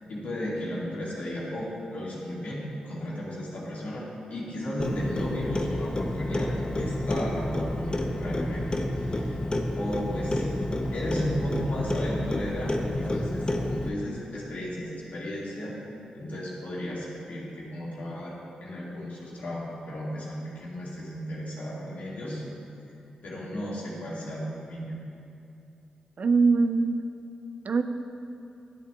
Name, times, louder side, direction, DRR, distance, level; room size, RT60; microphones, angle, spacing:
voice 1, 0.0-4.0 4.3-8.7 9.0-9.3 9.8-10.6 10.9-15.7 16.1-18.3 18.6-22.4 23.2-25.0, equal, 70° left, -6 dB, 1.8 m, -34 dB
Clock, 4.8-13.9, left 1 dB, 30° left, 0.7 m, -29 dB
voice 2, 26.2-27.1 27.7-27.8, right 4 dB, 60° right, 8 dB, 0.4 m, -22 dB
10.5 x 7.4 x 2.3 m, 2.7 s
supercardioid pair, 40°, 3 cm